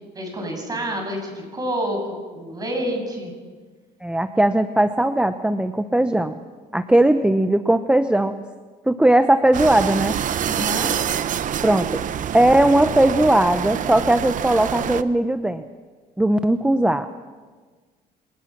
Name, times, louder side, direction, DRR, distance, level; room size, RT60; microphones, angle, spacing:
voice 1, 0.0-3.3 10.4-11.0, equal, 20° right, 2 dB, 7.6 m, -28 dB
voice 2, 4.0-6.4 6.7-8.3 8.9-10.2 11.6-12.0 12.3-15.6 16.2-17.1, right 1 dB, 5° right, 9 dB, 0.8 m, -18 dB
sound 1, 9.5-15.0, right 9 dB, 50° right, 0.9 m, -26 dB
26.5 x 19.0 x 6.0 m, 1.5 s
cardioid pair, 110°, 17 cm